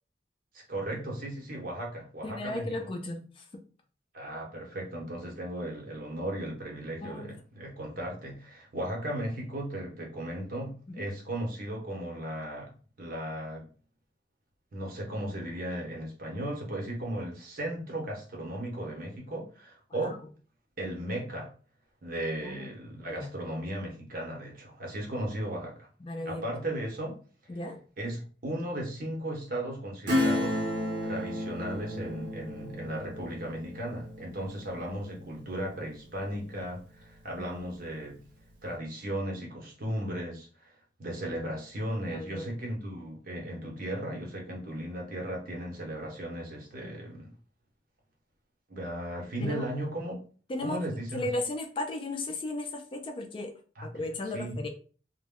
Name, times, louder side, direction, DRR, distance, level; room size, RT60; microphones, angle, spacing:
voice 1, 0.5-2.8 4.1-12.7 13.0-13.7 14.7-20.2 20.8-21.5 22.0-25.9 26.2-27.2 28.0-30.7 31.0-38.2 38.6-40.7 41.0-47.3 48.7-50.2 50.6-51.3 53.8-53.9 54.3-54.6, right 1 dB, 50° right, -1 dB, 0.9 m, -36 dB
voice 2, 2.2-3.6 7.0-7.3 10.9-11.1 20.0-20.2 22.4-22.7 23.1-23.3 26.0-26.4 27.5-27.8 37.4-37.5 42.1-42.5 46.8-47.0 49.4-49.6 50.5-50.8 51.1-53.5 53.8-54.7, left 2 dB, 30° left, 4 dB, 0.3 m, -35 dB
Acoustic guitar / Strum, 30.1-36.3 36.6-36.7, left 1 dB, 75° right, 0.6 m, -33 dB
2.1 x 2.1 x 3.5 m, 0.40 s
head